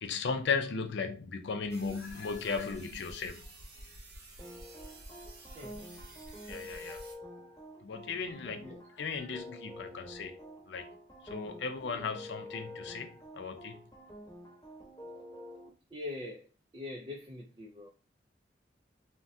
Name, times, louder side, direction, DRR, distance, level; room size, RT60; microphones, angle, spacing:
voice 1, 0.0-3.5 6.5-7.0 7.8-10.4 10.7-10.9 11.3-13.8, left 5 dB, 75° left, 0.5 m, -36 dB
sound 1, 1.7-7.1, right 1 dB, 60° right, 0.8 m, -50 dB
sound 2, 4.4-15.7, equal, 20° left, 1.0 m, -48 dB
voice 2, 15.9-16.4 16.7-17.9, left 2 dB, 30° right, 0.4 m, -42 dB
3.5 x 2.1 x 2.6 m
head